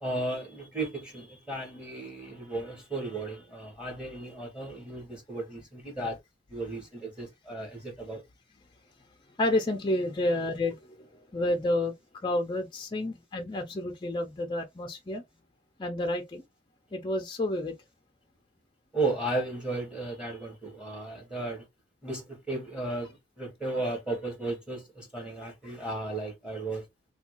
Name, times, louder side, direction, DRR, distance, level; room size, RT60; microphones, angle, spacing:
voice 1, 0.0-6.2 6.5-8.2 18.9-21.6 22.0-26.8, right 2 dB, 5° right, 1.2 m, -34 dB
voice 2, 9.4-11.1 11.3-11.9 12.2-15.2 15.8-16.4 16.9-17.7, left 1 dB, 25° left, 0.5 m, -30 dB
3.4 x 2.3 x 2.9 m
head